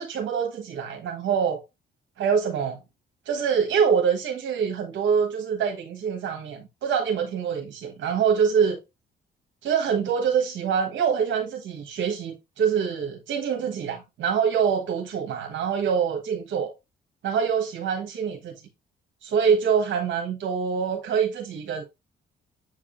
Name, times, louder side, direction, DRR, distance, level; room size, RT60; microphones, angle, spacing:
voice 1, 0.0-1.6 2.2-2.8 3.3-8.8 9.6-16.7 17.2-18.5 19.2-21.8, right 7 dB, 70° right, 1.3 m, -25 dB
7.7 x 4.8 x 2.5 m
cardioid pair, 90°, 20 cm